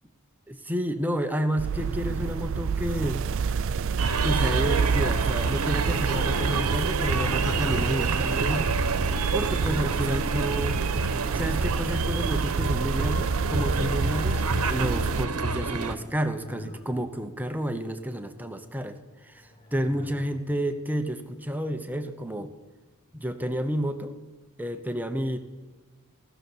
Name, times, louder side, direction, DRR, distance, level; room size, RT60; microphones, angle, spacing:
voice 1, 0.5-3.2 4.2-8.7 9.3-10.8 11.3-19.0 19.2-22.5 23.1-24.2 24.6-25.4, equal, 10° right, 7 dB, 0.8 m, -30 dB
sound 1, 1.6-15.3, right 5 dB, 60° right, 0.4 m, -28 dB
sound 2, 4.0-16.0, right 3 dB, 85° right, 1.0 m, -28 dB
sound 3, 5.0-10.4 12.4-14.3 15.8-17.4 19.2-20.5, left 2 dB, 25° left, 1.1 m, -46 dB
16.5 x 6.8 x 7.9 m, 1.3 s
head